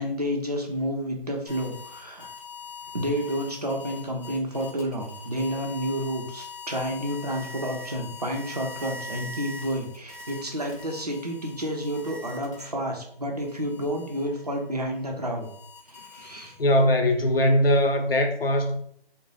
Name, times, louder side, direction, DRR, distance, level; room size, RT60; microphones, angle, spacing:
voice 1, 0.0-2.3 2.9-15.5 15.9-16.6, equal, 40° right, 0.6 m, -30 dB
sound 1, 1.5-12.9 13.4-16.7, left 3 dB, 35° left, 0.7 m, -43 dB
voice 2, 16.6-18.8, left 1 dB, 75° left, 0.8 m, -21 dB
3.8 x 2.1 x 3.2 m
figure-of-eight pair, 180°, 29 cm